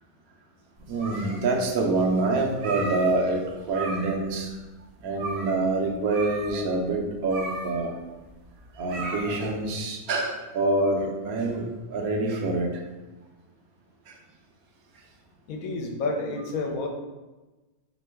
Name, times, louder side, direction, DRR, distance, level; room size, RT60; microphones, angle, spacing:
sound 1, 0.8-1.7 2.0-2.1 2.5-3.4 3.7-4.3 4.6-4.7 5.1-5.7 6.1-9.7, right 2 dB, 65° right, 0.7 m, -36 dB
voice 1, 0.9-3.4 3.7-4.5 5.0-7.9 8.8-12.7 14.1-14.2, right 2 dB, 80° right, 1 dB, 1.1 m, -26 dB
voice 2, 15.5-16.9, left 3 dB, 75° left, 3 dB, 1.0 m, -29 dB
3.7 x 3.0 x 3.4 m, 1.1 s
omnidirectional pair, 1.5 m